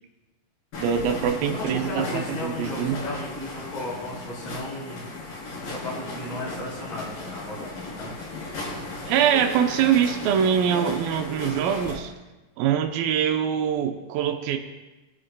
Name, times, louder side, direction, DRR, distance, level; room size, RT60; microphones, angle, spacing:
sound 1, 0.7-12.0, left 2 dB, 70° left, 5.4 m, -36 dB
voice 1, 0.8-3.0 9.1-12.1 12.6-14.6, right 8 dB, 80° right, 4 dB, 2.5 m, -23 dB
voice 2, 1.5-5.0 5.6-8.2, left 1 dB, 40° left, -8 dB, 4.3 m, -35 dB
22.0 x 11.5 x 2.2 m, 1.1 s
omnidirectional pair, 4.1 m